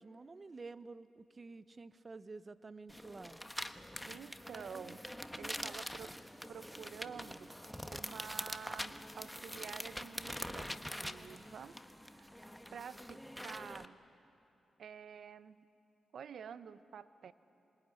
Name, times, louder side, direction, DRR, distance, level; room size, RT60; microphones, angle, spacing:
voice 1, 0.0-3.4, right 3 dB, 40° right, 14 dB, 1.0 m, -50 dB
sound 1, 2.9-13.9, equal, 5° left, 1.3 m, -45 dB
voice 2, 4.0-5.0 5.4-6.1 6.5-7.5 7.9-10.7 11.0-11.8 12.1-14.0 14.8-15.6 16.1-17.3, right 7 dB, 75° right, 13 dB, 0.9 m, -49 dB
26.5 x 22.0 x 9.9 m, 3.0 s
supercardioid pair, 50°, 0 cm